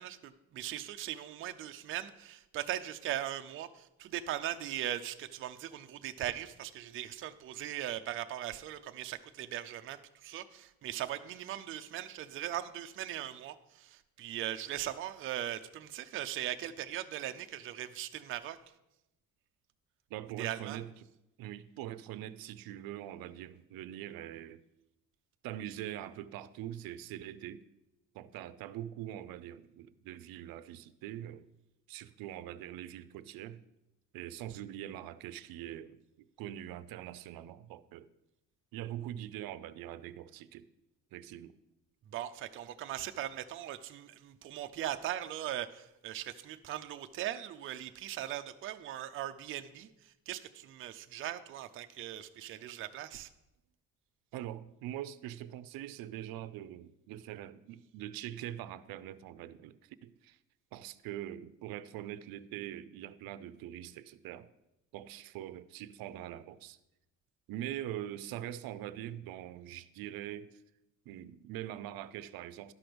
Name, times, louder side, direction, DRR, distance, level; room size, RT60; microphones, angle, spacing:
voice 1, 0.0-18.6 20.4-20.8 42.1-53.3, right 12 dB, 40° right, 0.4 m, -39 dB
voice 2, 20.1-20.9 21.4-24.6 25.4-27.7 28.1-31.5 31.9-33.6 34.1-38.1 38.7-40.7 41.1-41.6 54.3-60.4 60.7-64.5 64.9-66.8 67.5-70.6 71.1-72.7, right 12 dB, 90° right, 0.6 m, -43 dB
11.5 x 5.0 x 6.1 m
cardioid pair, 175°, 35 cm